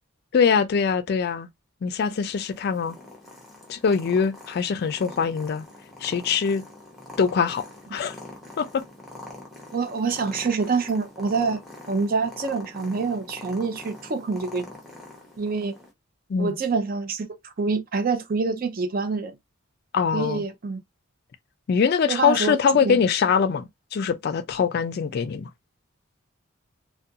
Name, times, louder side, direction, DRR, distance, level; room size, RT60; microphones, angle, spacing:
voice 1, 0.3-1.5 1.8-3.0 3.7-5.7 6.0-6.6 7.2-7.6 7.9-8.1 8.6-8.8 16.3-16.5 19.9-20.4 21.7-25.5, left 6 dB, 50° left, 0.3 m, -23 dB
Purr, 2.0-15.9, left 2 dB, ahead, 0.7 m, -44 dB
voice 2, 9.7-11.6 11.9-14.7 15.4-15.8 16.4-17.3 17.6-19.3 20.1-20.8 22.1-23.0, right 4 dB, 45° right, 0.4 m, -26 dB
2.4 x 2.2 x 2.7 m
head